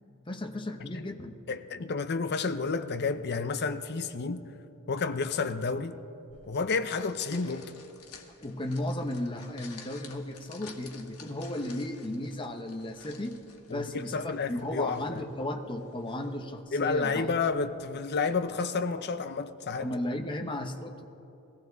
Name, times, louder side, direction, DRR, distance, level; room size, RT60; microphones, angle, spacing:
voice 1, 0.3-1.3 8.4-13.4 13.7-17.3 19.8-21.0, left 1 dB, 20° left, 0.8 m, -35 dB
voice 2, 1.5-4.5 4.9-6.0 6.5-7.7 13.7-15.2 16.7-19.9, left 4 dB, 50° left, 0.6 m, -30 dB
sound 1, 6.3-17.7, left 5 dB, 90° left, 1.5 m, -52 dB
21.5 x 15.0 x 4.0 m
head